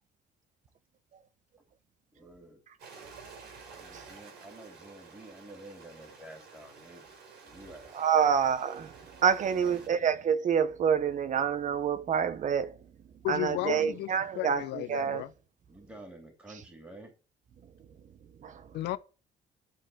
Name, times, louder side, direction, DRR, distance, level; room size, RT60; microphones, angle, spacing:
voice 1, 2.1-2.6 3.8-7.0 7.4-8.3 9.4-10.0 13.4-14.1 15.7-17.1, right 1 dB, 15° right, 2.9 m, -50 dB
Stream, 2.8-9.9, right 5 dB, 75° right, 4.2 m, -51 dB
voice 2, 7.9-12.8 13.3-15.2 18.4-18.7, right 7 dB, 45° right, 1.1 m, -28 dB
voice 3, 13.2-15.3 18.7-19.0, left 16 dB, 85° left, 0.9 m, -34 dB
12.0 x 4.4 x 7.8 m
cardioid pair, 110°, 17 cm